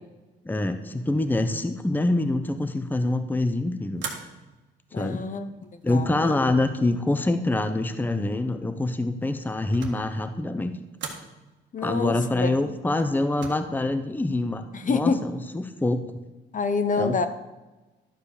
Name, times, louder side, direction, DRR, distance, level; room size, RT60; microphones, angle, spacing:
voice 1, 0.4-4.0 4.9-5.3 5.8-10.7 11.8-16.1 17.0-17.2, left 2 dB, 10° left, 9 dB, 0.7 m, -25 dB
sound 1, 4.0-4.7 5.4-5.9 9.2-10.1 11.0-11.3 13.0-13.5, right 5 dB, 65° right, 1.6 m, -38 dB
voice 2, 4.9-6.5 11.7-12.8 14.7-15.3 16.5-17.3, left 4 dB, 40° left, 10 dB, 0.8 m, -28 dB
11.5 x 4.9 x 6.7 m, 1.1 s
cardioid pair, 90°, 20 cm